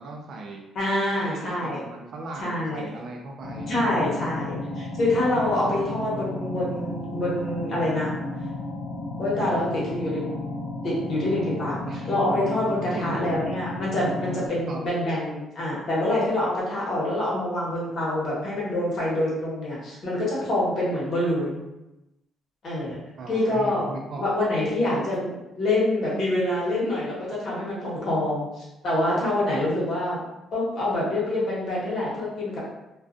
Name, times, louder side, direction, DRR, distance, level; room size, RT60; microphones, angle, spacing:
voice 1, 0.0-0.6 1.1-3.7 11.9-12.1 12.9-13.4 14.7-14.9 23.2-24.5, right 2 dB, 55° right, 1 dB, 0.4 m, -37 dB
voice 2, 0.7-1.8 2.4-2.9 3.7-8.1 9.2-10.3 10.8-11.8 12.1-21.6 22.6-23.0 23.3-23.8 24.2-30.2 30.5-32.6, left 1 dB, 55° left, -6 dB, 1.1 m, -26 dB
sound 1, 3.4-14.5, left 2 dB, 90° left, 0.6 m, -33 dB
2.3 x 2.2 x 2.5 m, 0.97 s
cardioid pair, 120°, 0 cm